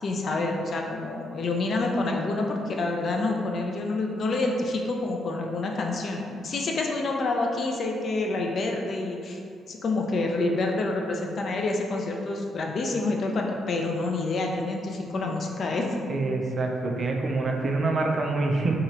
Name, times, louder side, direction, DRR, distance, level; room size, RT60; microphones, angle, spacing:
voice 1, 0.0-9.4 9.7-15.9, left 2 dB, 55° left, 1 dB, 0.3 m, -28 dB
voice 2, 16.1-18.7, right 3 dB, 45° right, 1 dB, 0.4 m, -26 dB
2.7 x 2.4 x 3.1 m, 2.3 s
cardioid pair, 90°, 0 cm